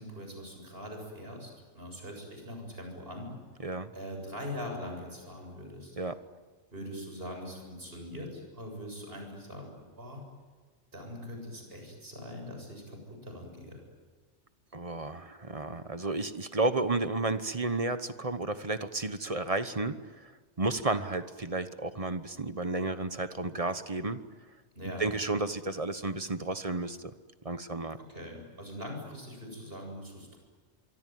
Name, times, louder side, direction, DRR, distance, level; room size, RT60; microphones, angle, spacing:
voice 1, 0.0-3.3 3.9-5.9 6.7-10.2 10.9-13.8 24.7-25.1 28.0-30.4, left 1 dB, 55° right, 3 dB, 7.7 m, -42 dB
voice 2, 14.7-20.3 20.6-24.2 25.0-27.1 27.4-28.0, right 2 dB, 30° right, 11 dB, 1.1 m, -32 dB
26.0 x 23.5 x 9.4 m, 1.5 s
omnidirectional pair, 1.2 m